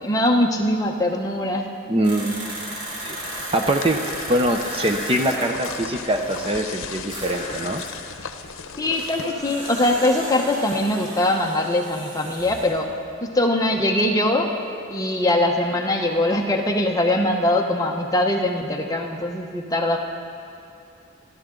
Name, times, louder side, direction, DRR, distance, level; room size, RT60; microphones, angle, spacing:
voice 1, 0.0-1.7 8.8-12.9 13.2-14.5 14.9-20.0, left 1 dB, 15° left, 1 dB, 0.9 m, -22 dB
voice 2, 1.9-2.4 3.0-4.0 4.3-7.8, right 1 dB, 25° right, 4 dB, 0.6 m, -23 dB
sound 1, 2.0-6.5 7.1-12.8 13.1-13.2, right 1 dB, 65° right, 4.8 m, -35 dB
sound 2, 2.8-10.6, left 6 dB, 80° left, 0.8 m, -38 dB
28.0 x 12.0 x 3.8 m, 2.6 s
head